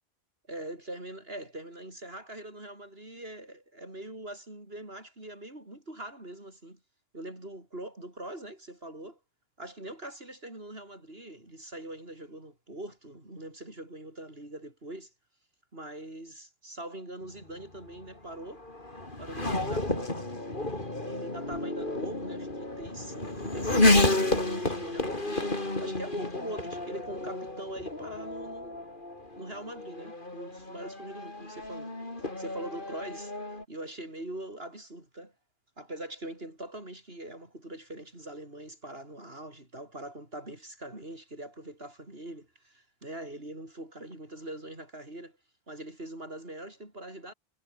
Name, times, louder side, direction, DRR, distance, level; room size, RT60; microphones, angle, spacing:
voice 1, 0.5-6.8 7.1-9.2 9.6-15.1 15.7-18.6 19.2-20.3 21.0-25.5 25.8-28.9 29.3-31.9 32.2-33.3 33.7-35.3 35.8-45.4 45.7-47.3, right 1 dB, 75° right, 6.9 m, -42 dB
Race car auto racing / Accelerating revving vroom, 17.4-33.6, left 2 dB, 55° left, 4.4 m, -31 dB
omnidirectional pair, 1.0 m